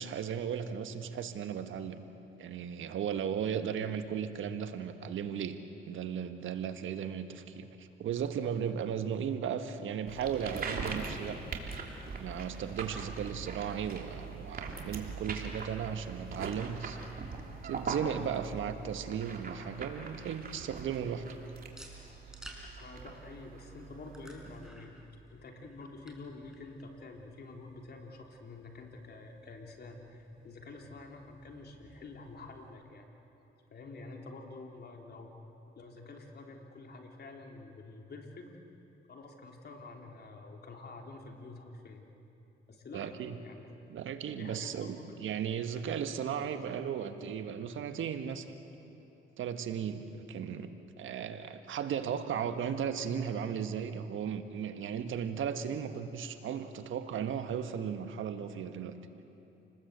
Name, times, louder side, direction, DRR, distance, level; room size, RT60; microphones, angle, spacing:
voice 1, 0.0-2.1 2.4-5.6 5.9-11.4 12.2-17.0 17.6-21.3 42.9-43.3 43.9-48.5 48.8-49.0 49.4-50.7 51.0-58.9, right 8 dB, 70° right, 8 dB, 1.6 m, -36 dB
sound 1, 10.1-24.7, right 4 dB, 45° right, 3.3 m, -42 dB
sound 2, 18.5-32.7, right 1 dB, 5° right, 5.2 m, -57 dB
voice 2, 22.8-25.0 25.3-33.1 33.7-35.3 35.8-38.5 39.1-42.0 42.7-43.1 43.4-43.8 44.4-45.3, left 3 dB, 50° left, 2 dB, 3.6 m, -48 dB
29.0 x 20.0 x 8.2 m, 3.0 s
cardioid pair, 85°, 21 cm